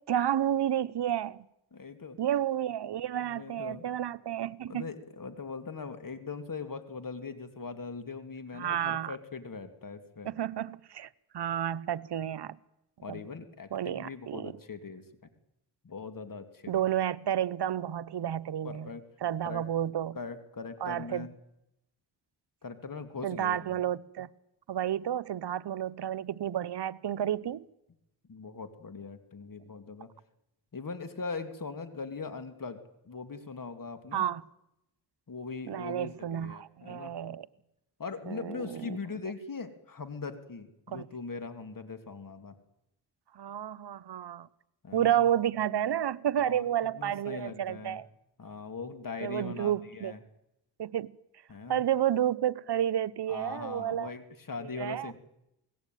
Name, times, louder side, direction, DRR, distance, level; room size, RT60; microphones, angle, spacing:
voice 1, 0.1-1.5 2.2-4.9 8.5-9.1 10.2-11.1 11.3-12.6 13.1-13.2 13.7-14.5 16.7-18.9 19.2-20.2 20.8-21.3 23.2-24.3 24.7-27.6 34.1-34.4 35.7-37.5 38.3-39.0 40.9-41.1 43.3-44.5 44.9-48.1 49.2-50.1 50.8-51.1 51.7-54.1 54.8-55.1, right 10 dB, 65° right, 0.9 m, -31 dB
voice 2, 1.7-2.2 3.2-3.9 4.7-10.3 13.0-15.0 15.8-16.8 18.6-19.0 19.4-19.6 20.1-21.3 22.6-23.8 28.3-30.1 30.7-34.3 35.3-37.1 38.0-42.6 44.8-45.2 46.4-46.7 46.9-48.0 48.4-50.2 51.5-51.8 53.3-55.1, left 4 dB, 50° left, 2.5 m, -41 dB
28.0 x 18.5 x 9.2 m
cardioid pair, 90°, 44 cm